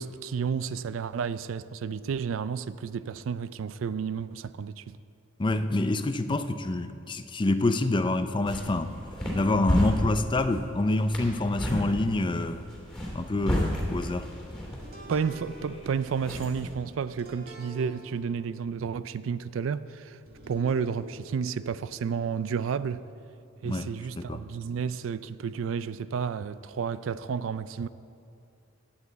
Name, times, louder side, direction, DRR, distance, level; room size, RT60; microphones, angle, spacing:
voice 1, 0.0-5.0 15.1-20.2 20.5-23.0 23.6-27.9, right 6 dB, 75° right, 15 dB, 0.4 m, -31 dB
voice 2, 5.4-8.9 9.3-12.6 13.1-14.3 23.6-23.9 24.2-24.4, left 2 dB, 25° left, 9 dB, 0.5 m, -27 dB
sound 1, 8.2-16.7, equal, 5° left, 2.7 m, -33 dB
sound 2, 14.7-25.3, right 1 dB, 50° right, 1.9 m, -50 dB
17.5 x 8.8 x 4.1 m, 2.5 s
head